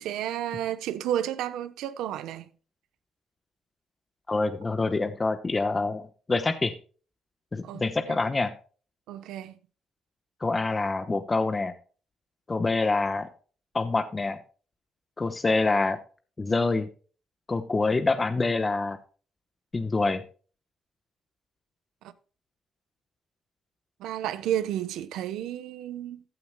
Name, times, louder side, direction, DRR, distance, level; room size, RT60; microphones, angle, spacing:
voice 1, 0.0-2.5 7.6-8.2 9.1-9.6 22.0-22.1 24.0-26.2, right 11 dB, 90° right, 0.8 m, -32 dB
voice 2, 4.3-6.7 7.5-8.5 10.4-11.7 12.5-13.3 13.7-14.4 15.2-16.0 16.4-16.9 17.5-19.0 19.7-20.2, left 3 dB, 25° left, 1.0 m, -26 dB
15.0 x 9.2 x 2.2 m
cardioid pair, 90°, 0 cm